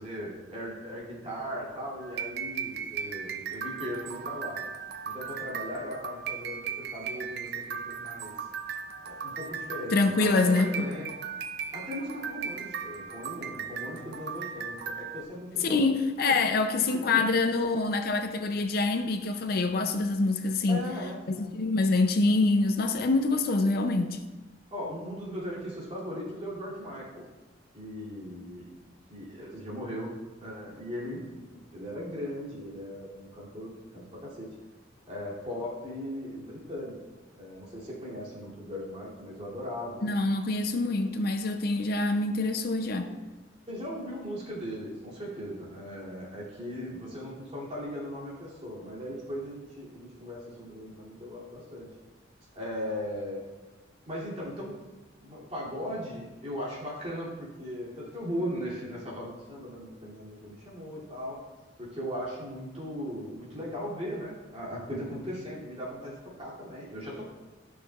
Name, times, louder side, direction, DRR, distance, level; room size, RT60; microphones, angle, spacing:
voice 1, 0.0-4.6 5.0-8.5 9.0-11.1 11.7-15.9 16.3-16.4 16.8-17.2 20.7-21.5 24.7-27.2 27.7-28.8 29.1-30.2 30.4-31.4 31.7-34.5 35.1-37.0 37.3-40.4 43.7-51.9 52.5-53.4 54.0-54.8 55.2-61.4 61.8-67.3, equal, 30° right, -7 dB, 2.7 m, -38 dB
sound 1, 2.0-15.2, right 7 dB, 55° right, 0.5 m, -37 dB
voice 2, 9.9-10.7 15.6-20.8 21.3-24.2 40.0-43.1, left 3 dB, 50° left, 7 dB, 0.5 m, -25 dB
12.0 x 6.3 x 2.4 m, 1.2 s
head